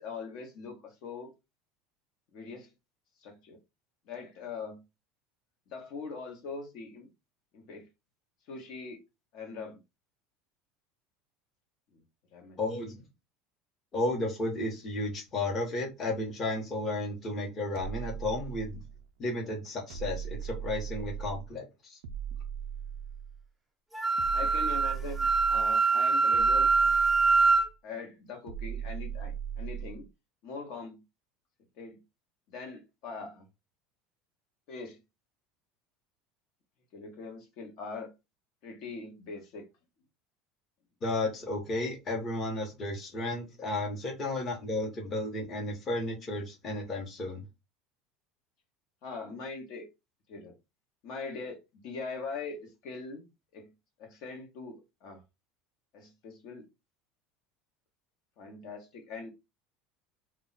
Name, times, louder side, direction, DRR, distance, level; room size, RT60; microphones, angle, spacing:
voice 1, 0.0-1.3 2.3-2.7 3.2-3.6 4.1-4.8 5.7-7.1 7.5-7.9 8.5-9.0 9.3-9.8 11.9-12.0 12.3-12.6 24.3-26.9 27.8-30.0 30.4-31.0 31.8-32.0 32.5-33.4 34.7-35.0 36.9-38.1 38.6-39.7 49.0-49.9 50.3-50.5 51.0-53.7 54.0-55.2 55.9-56.7 58.4-59.3, left 4 dB, 55° left, 0.8 m, -42 dB
voice 2, 12.6-13.0 13.9-18.8 19.2-22.0 41.0-47.4, left 2 dB, 25° left, 0.8 m, -33 dB
sound 1, 17.8-19.1 19.9-21.5 22.0-23.5 24.2-25.8 26.3-27.7 28.5-30.1, right 8 dB, 85° right, 0.3 m, -38 dB
Wind instrument woodwind instrument, 23.9-27.7, right 4 dB, 5° right, 0.4 m, -24 dB
2.2 x 2.1 x 3.8 m
cardioid pair, 165°, 0 cm